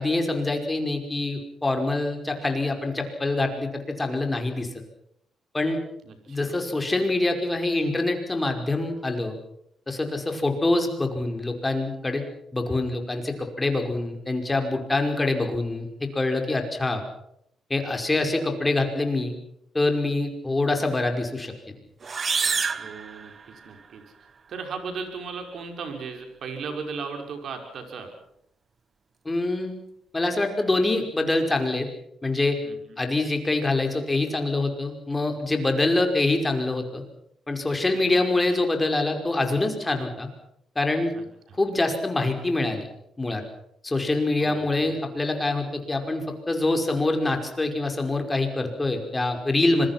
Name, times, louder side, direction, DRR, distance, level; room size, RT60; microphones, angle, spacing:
voice 1, 0.0-4.7 5.5-5.8 6.3-9.4 9.9-12.2 12.5-17.0 17.7-19.3 19.7-21.5 29.3-29.7 30.1-31.9 32.2-32.6 33.0-37.0 37.5-40.3 40.8-41.1 41.6-42.9 43.2-43.4 43.8-49.9, left 2 dB, 20° left, 5 dB, 5.3 m, -25 dB
voice 2, 6.0-6.6 22.8-28.1 32.6-33.0 38.0-38.4 41.1-41.6 44.4-45.0, right 5 dB, 65° right, 5 dB, 5.9 m, -37 dB
sound 1, 22.0-23.9, right 5 dB, 40° right, 1.2 m, -28 dB
26.0 x 22.5 x 6.0 m, 0.75 s
cardioid pair, 90°, 0 cm